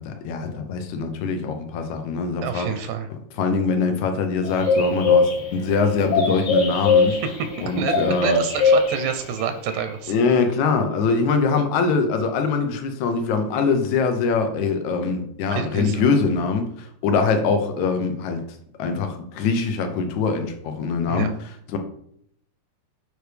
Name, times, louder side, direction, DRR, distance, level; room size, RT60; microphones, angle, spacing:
voice 1, 0.0-2.7 3.4-7.2 7.6-8.4 10.1-18.4 18.8-21.3 21.7-21.8, left 4 dB, 75° left, 5 dB, 2.2 m, -23 dB
voice 2, 2.4-3.1 7.1-7.5 7.8-7.9 8.2-10.1 15.0-15.1 15.5-16.1 21.1-21.3, right 7 dB, 85° right, 8 dB, 2.1 m, -28 dB
sound 1, 4.4-9.4 9.7-9.9, left 4 dB, 45° left, 1.8 m, -21 dB
7.8 x 4.9 x 3.3 m, 0.68 s
omnidirectional pair, 3.5 m